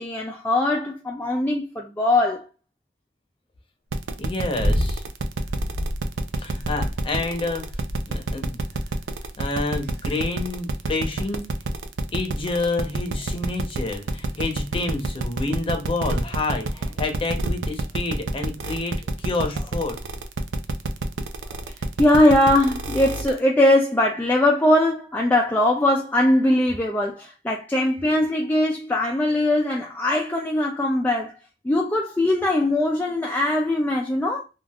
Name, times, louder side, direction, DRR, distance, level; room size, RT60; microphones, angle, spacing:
voice 1, 0.0-2.5 21.7-31.3 31.6-34.4, left 1 dB, 10° left, 0.3 m, -21 dB
sound 1, 3.9-23.4, right 3 dB, 85° right, 0.4 m, -29 dB
voice 2, 4.2-5.0 6.4-7.6 8.1-8.6 9.4-11.4 12.1-20.0, left 3 dB, 30° left, 0.7 m, -28 dB
sound 2, 4.6-5.0 5.4-6.0 6.6-7.2 7.7-8.2 8.8-9.1 9.8-10.2 11.1-11.2, equal, 65° right, 1.2 m, -27 dB
3.4 x 2.3 x 2.3 m
head